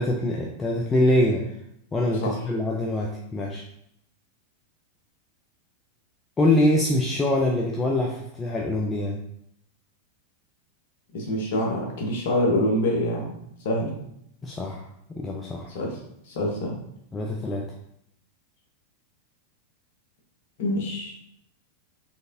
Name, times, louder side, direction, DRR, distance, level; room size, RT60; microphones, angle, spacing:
voice 1, 0.0-1.4 1.9-3.6 6.4-9.2 14.4-14.8 15.1-15.7 17.1-17.6, left 1 dB, 15° left, -1 dB, 0.5 m, -24 dB
voice 2, 11.1-13.4 13.6-13.9 15.7-15.9 16.3-16.8 20.6-21.1, left 1 dB, 55° left, -1 dB, 1.0 m, -25 dB
4.1 x 3.2 x 2.6 m, 0.74 s
figure-of-eight pair, 90°, 0 cm